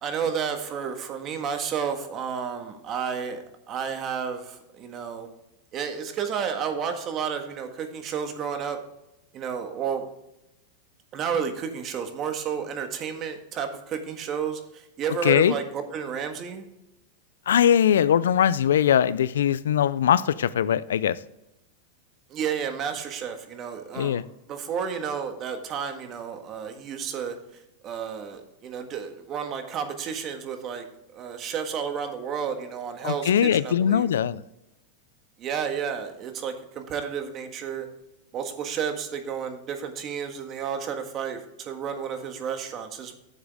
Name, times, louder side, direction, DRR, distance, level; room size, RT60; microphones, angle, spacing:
voice 1, 0.0-5.3 5.7-8.8 9.3-10.0 11.1-16.7 22.3-24.2 24.5-27.3 27.8-30.8 31.1-34.1 35.4-37.9 38.3-43.2, right 7 dB, 35° right, 6 dB, 1.5 m, -31 dB
voice 2, 15.2-15.5 17.5-21.2 24.0-24.2 33.0-34.4, left 9 dB, 90° left, 18 dB, 0.4 m, -21 dB
10.5 x 7.2 x 3.6 m, 0.87 s
supercardioid pair, 130°, 0 cm